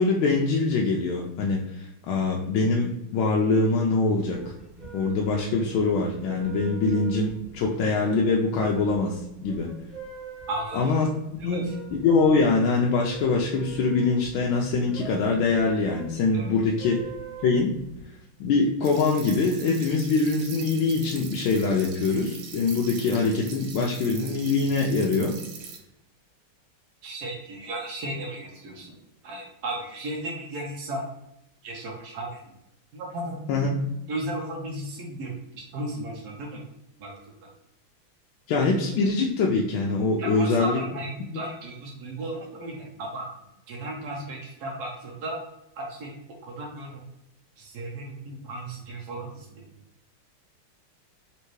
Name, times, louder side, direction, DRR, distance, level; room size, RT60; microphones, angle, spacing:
voice 1, 0.0-4.4 4.9-9.7 10.7-17.0 17.4-17.8 18.4-25.4 33.5-33.8 38.5-40.8, left 3 dB, 75° left, -1 dB, 1.3 m, -24 dB
sound 1, 4.2-18.0, right 3 dB, 35° right, 1.0 m, -43 dB
voice 2, 10.5-11.0 11.4-11.7 16.3-16.5 27.0-28.9 29.2-31.0 31.6-32.5 32.9-33.4 34.1-36.6 37.0-37.1 37.4-37.5 40.2-43.3 43.7-45.4 45.8-46.1 46.4-47.0 47.6-49.6, right 1 dB, 65° right, -2 dB, 1.1 m, -35 dB
sound 2, 18.8-25.8, right 6 dB, 90° right, 1.6 m, -42 dB
4.5 x 2.9 x 3.1 m, 0.85 s
omnidirectional pair, 2.3 m